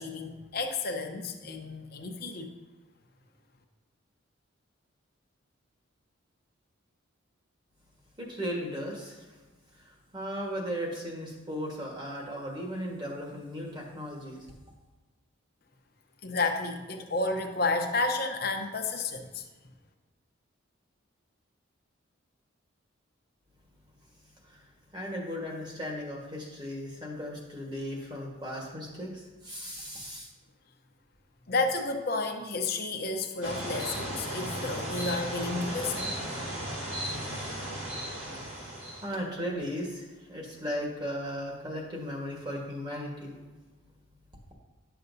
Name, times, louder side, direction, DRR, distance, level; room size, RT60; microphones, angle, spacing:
voice 1, 0.0-2.5 16.2-19.4 31.5-36.2, left 3 dB, 45° left, 4 dB, 0.8 m, -31 dB
voice 2, 8.2-9.2 9.8-14.5 24.5-24.6 24.9-30.3 39.0-43.3, equal, 20° right, -1 dB, 1.4 m, -36 dB
sound 1, 33.4-39.1, right 1 dB, 65° right, 1.9 m, -35 dB
11.0 x 6.8 x 2.7 m, 1.2 s
head